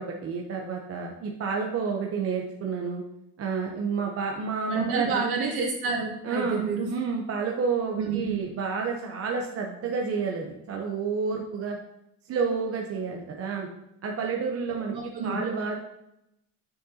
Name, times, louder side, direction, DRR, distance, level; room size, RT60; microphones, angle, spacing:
voice 1, 0.0-3.0 3.4-5.2 6.2-6.6 6.9-11.8 12.3-13.7 14.0-14.9 15.2-15.7, right 5 dB, 35° right, 0 dB, 0.7 m, -30 dB
voice 2, 4.7-6.9 8.0-8.4 14.9-15.4, right 4 dB, 60° right, -3 dB, 2.2 m, -29 dB
6.6 x 6.4 x 2.7 m, 0.83 s
cardioid pair, 130°, 41 cm